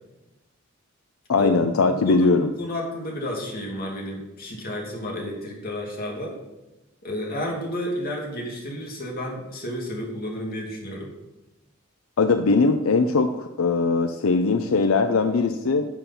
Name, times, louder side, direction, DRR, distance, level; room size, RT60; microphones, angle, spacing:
voice 1, 1.3-2.5 12.2-15.9, left 4 dB, 90° left, 8 dB, 0.5 m, -20 dB
voice 2, 1.9-6.4 7.0-11.1, equal, 50° left, -1 dB, 2.4 m, -31 dB
11.5 x 7.1 x 4.2 m, 0.99 s
head